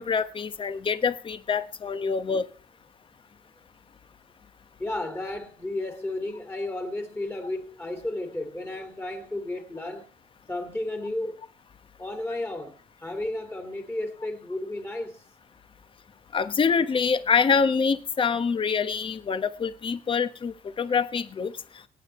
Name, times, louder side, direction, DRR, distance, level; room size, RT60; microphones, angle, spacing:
voice 1, 0.0-2.4 16.3-21.5, left 5 dB, 30° left, 1.1 m, -25 dB
voice 2, 4.8-10.1 10.5-11.4 12.0-15.2, left 1 dB, 15° left, 2.2 m, -33 dB
24.0 x 9.0 x 3.1 m
cardioid pair, 110°, 17 cm